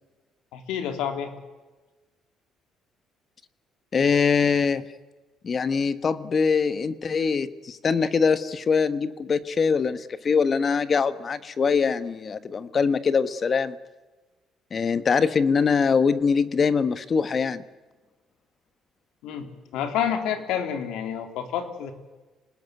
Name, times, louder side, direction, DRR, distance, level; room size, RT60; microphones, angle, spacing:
voice 1, 0.5-1.3 19.2-21.9, left 8 dB, 90° left, 7 dB, 3.5 m, -29 dB
voice 2, 3.9-4.8 5.4-13.8 14.7-17.6, left 5 dB, 30° left, 13 dB, 1.3 m, -23 dB
27.5 x 19.5 x 9.5 m, 1.2 s
cardioid pair, 145°, 0 cm